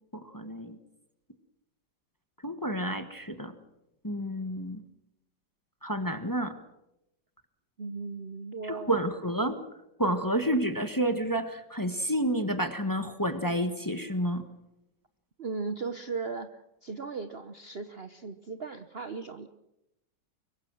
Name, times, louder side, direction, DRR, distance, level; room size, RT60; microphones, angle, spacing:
voice 1, 0.1-0.8 2.4-3.6 4.0-4.8 5.8-6.5 8.6-9.6 10.0-14.5, right 1 dB, 10° left, 8 dB, 1.2 m, -30 dB
voice 2, 7.8-9.0 15.4-19.5, right 4 dB, 45° right, 9 dB, 0.9 m, -37 dB
24.5 x 22.5 x 6.3 m, 0.88 s
omnidirectional pair, 2.0 m